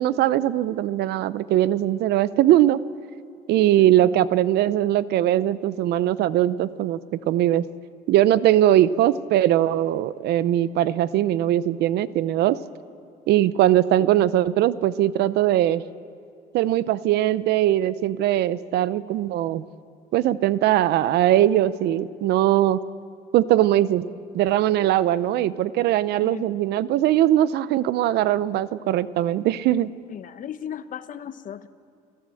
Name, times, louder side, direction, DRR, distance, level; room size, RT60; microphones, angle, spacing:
voice 1, 0.0-2.8 3.5-7.7 8.1-12.6 13.3-15.8 16.5-19.6 20.1-22.8 23.3-24.1 24.3-29.9, right 13 dB, 75° right, 17 dB, 0.7 m, -20 dB
voice 2, 3.8-4.3 26.2-26.5 30.1-31.7, left 9 dB, 50° left, 12 dB, 1.0 m, -37 dB
29.0 x 14.0 x 7.8 m, 2.4 s
cardioid pair, 110°, 17 cm